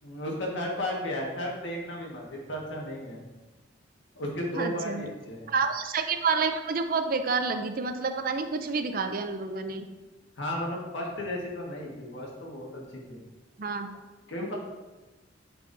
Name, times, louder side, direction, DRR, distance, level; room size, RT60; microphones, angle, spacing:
voice 1, 0.0-3.2 4.1-5.5 10.4-13.2 14.3-14.5, left 1 dB, 80° left, -2 dB, 1.7 m, -34 dB
voice 2, 4.5-5.0 5.5-9.9 13.6-13.9, right 4 dB, 50° right, 8 dB, 0.5 m, -29 dB
8.9 x 4.7 x 2.7 m, 1.2 s
head